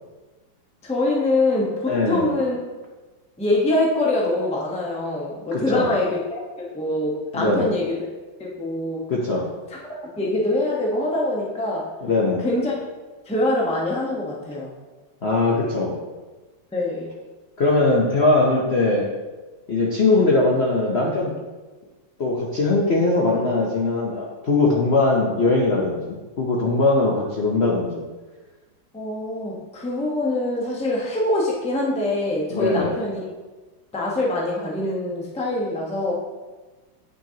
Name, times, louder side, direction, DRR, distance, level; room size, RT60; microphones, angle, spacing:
voice 1, 0.8-2.6 3.4-8.1 8.4-9.1 9.7-9.8 10.2-11.9 12.4-12.7 13.3-14.7 16.7-17.1 28.9-33.2 33.9-36.1, left 2 dB, 5° left, -3 dB, 0.4 m, -24 dB
voice 2, 1.9-2.3 5.5-6.0 7.3-7.7 9.1-9.5 12.0-12.4 15.2-16.0 17.6-19.1 19.7-21.3 22.2-28.0 32.5-33.0, left 2 dB, 65° left, -2 dB, 0.6 m, -21 dB
8.4 x 6.0 x 2.9 m, 1.3 s
omnidirectional pair, 2.4 m